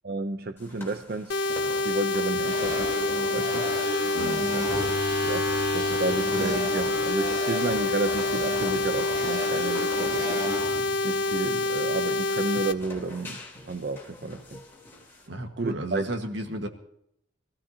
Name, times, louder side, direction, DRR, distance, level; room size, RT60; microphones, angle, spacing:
voice 1, 0.0-1.4 1.8-2.9 3.3-3.7 4.5-4.6 5.2-10.4 11.0-14.6 15.6-16.0, right 3 dB, 55° right, 0.6 m, -31 dB
sound 1, 0.6-15.3, left 1 dB, 15° left, 3.6 m, -43 dB
sound 2, 1.3-12.7, left 3 dB, 70° left, 0.8 m, -27 dB
sound 3, 2.4-11.9, right 1 dB, 20° right, 1.0 m, -34 dB
voice 2, 4.1-4.5 15.3-16.7, right 1 dB, 75° right, 1.6 m, -32 dB
24.5 x 15.5 x 2.8 m
head